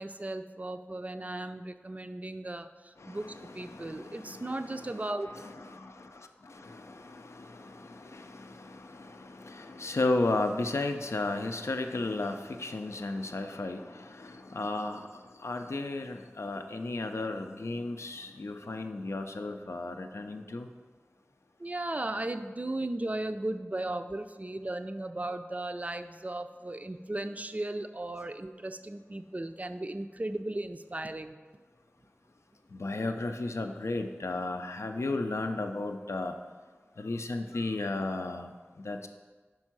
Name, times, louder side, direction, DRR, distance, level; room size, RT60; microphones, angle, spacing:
voice 1, 0.0-5.3 21.6-31.4, right 2 dB, 35° right, 9 dB, 0.4 m, -36 dB
voice 2, 3.0-15.1 15.4-20.7 32.7-36.3 37.0-38.5 38.8-39.1, left 2 dB, 85° left, 6 dB, 0.5 m, -34 dB
5.3 x 4.5 x 6.0 m, 1.4 s
wide cardioid pair, 50°, 5 cm